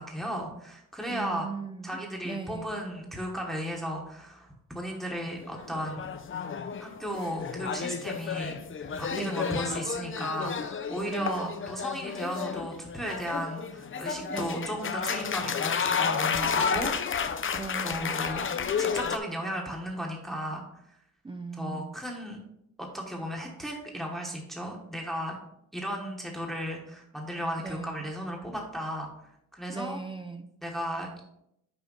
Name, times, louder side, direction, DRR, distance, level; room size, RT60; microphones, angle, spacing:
voice 1, 0.0-1.5 1.8-6.1 6.8-17.3 17.8-18.5 18.8-20.7 21.6-22.4 22.8-25.4 25.7-29.1 29.5-30.0 30.6-31.2, equal, ahead, -1 dB, 1.1 m, -35 dB
voice 2, 1.1-2.8 9.1-9.8 11.1-11.7 14.3-14.8 17.5-18.2 21.2-21.9 27.6-28.1 29.7-30.5, right 4 dB, 15° right, 6 dB, 0.4 m, -38 dB
sound 1, 5.4-19.2, left 6 dB, 40° left, 0.5 m, -31 dB
6.1 x 4.9 x 5.4 m, 0.77 s
wide cardioid pair, 145°, 33 cm